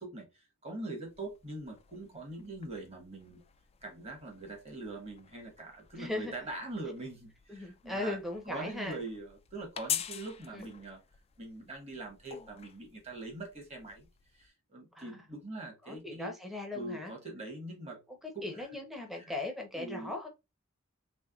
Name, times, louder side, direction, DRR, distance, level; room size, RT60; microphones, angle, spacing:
voice 1, 0.0-3.4 3.8-8.2 8.4-11.0 11.4-14.1 14.3-16.3 16.7-18.0 18.3-18.7 19.1-19.3 19.7-20.1, right 2 dB, 30° right, 1.4 m, -43 dB
sound 1, 1.0-14.5, left 10 dB, 30° left, 0.3 m, -46 dB
voice 2, 5.9-6.3 7.5-9.0 10.5-10.6 14.9-15.1 15.8-17.1 18.2-20.3, left 2 dB, ahead, 0.8 m, -38 dB
3.4 x 3.1 x 2.3 m
head